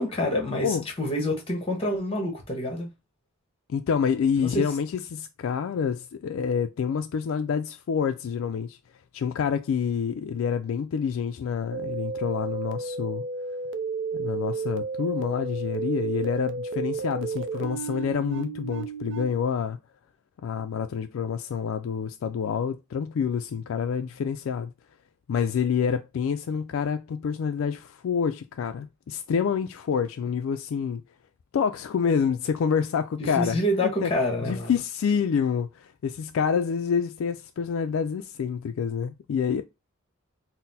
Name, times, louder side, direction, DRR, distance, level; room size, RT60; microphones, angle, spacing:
voice 1, 0.0-2.9 4.4-4.6 33.2-34.7, left 1 dB, 25° left, 1.2 m, -27 dB
voice 2, 3.7-8.8 9.1-13.2 14.1-19.8 20.4-24.7 25.3-31.0 31.5-34.1 34.4-39.6, left 6 dB, 65° left, 0.3 m, -27 dB
sound 1, 11.7-19.2, right 4 dB, 55° right, 0.4 m, -32 dB
4.0 x 2.1 x 4.0 m
head